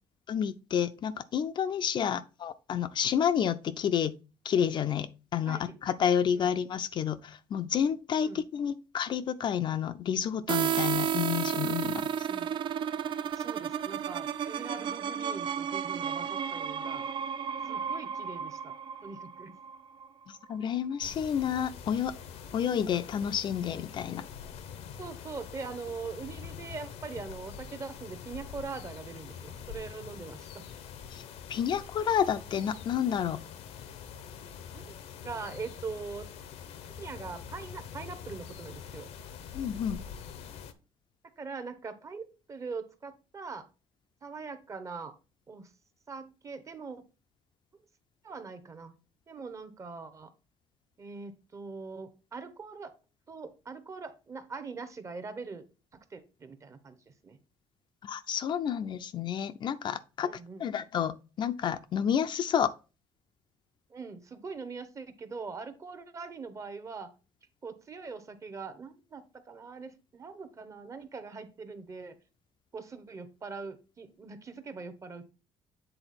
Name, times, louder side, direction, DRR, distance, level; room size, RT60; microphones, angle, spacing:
voice 1, 0.3-4.1 4.4-12.3 20.3-22.2 22.5-24.2 31.1-31.2 31.5-33.4 39.5-40.0 58.0-60.3 60.6-62.7, left 8 dB, 45° left, 0.4 m, -30 dB
voice 2, 5.4-5.8 6.4-6.5 8.2-8.4 12.3-12.5 13.3-17.1 17.6-18.7 19.0-19.6 25.0-30.7 34.7-35.0 35.2-36.3 37.0-39.1 41.4-43.7 44.2-45.1 45.5-45.7 46.1-47.0 47.7-47.9 48.2-48.9 49.3-50.3 51.0-52.9 53.3-55.6 55.9-57.4 60.2-60.6 63.9-67.1 67.6-72.2 72.7-75.3, right 4 dB, 30° right, 0.8 m, -42 dB
sound 1, 10.5-20.1, right 8 dB, 50° right, 0.4 m, -32 dB
sound 2, 21.0-40.7, left 7 dB, 80° left, 0.8 m, -45 dB
7.9 x 3.8 x 4.1 m
cardioid pair, 135°, 11 cm